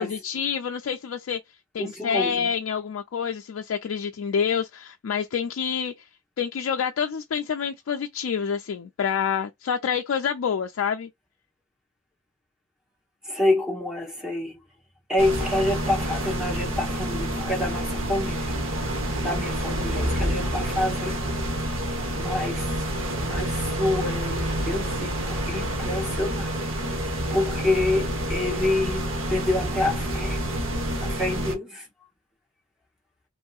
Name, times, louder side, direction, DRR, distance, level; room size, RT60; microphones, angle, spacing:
voice 1, 0.0-1.4 1.7-6.1 6.4-11.1, left 7 dB, 70° left, 0.3 m, -27 dB
voice 2, 1.8-2.5 13.2-14.6 15.1-18.5 19.2-21.1 22.2-22.7 23.2-26.5 26.9-27.0 27.3-30.4 31.0-31.9, left 2 dB, 5° right, 0.8 m, -27 dB
sound 1, 15.2-31.6, right 1 dB, 70° right, 1.0 m, -28 dB
3.1 x 2.6 x 2.3 m
head